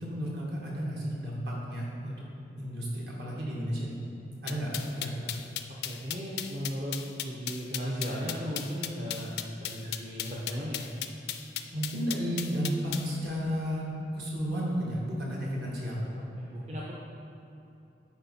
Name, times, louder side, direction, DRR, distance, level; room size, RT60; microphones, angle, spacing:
voice 1, 0.0-2.1 2.6-4.0 4.4-5.3 11.7-13.8 14.1-16.1, equal, 60° right, -4 dB, 1.7 m, -32 dB
sound 1, 4.5-13.1, left 12 dB, 65° left, 0.4 m, -35 dB
voice 2, 5.8-9.3 9.6-10.8 16.4-16.9, equal, 35° right, -6 dB, 0.7 m, -36 dB
9.6 x 4.4 x 4.2 m, 2.8 s
head